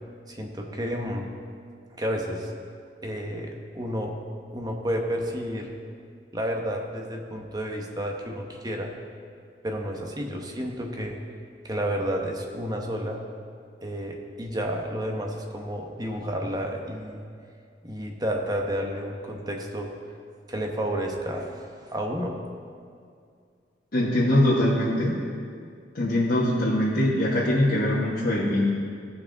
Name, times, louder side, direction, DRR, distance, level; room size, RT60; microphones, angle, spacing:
voice 1, 0.3-1.3 2.0-2.5 3.0-4.2 4.5-5.7 6.3-8.9 9.6-11.2 11.6-13.2 13.8-17.2 17.8-19.9 20.5-22.4, equal, 25° right, 1 dB, 1.1 m, -31 dB
voice 2, 23.9-25.2 25.9-28.7, left 1 dB, 55° left, -8 dB, 1.4 m, -22 dB
17.0 x 5.9 x 3.9 m, 2.2 s
head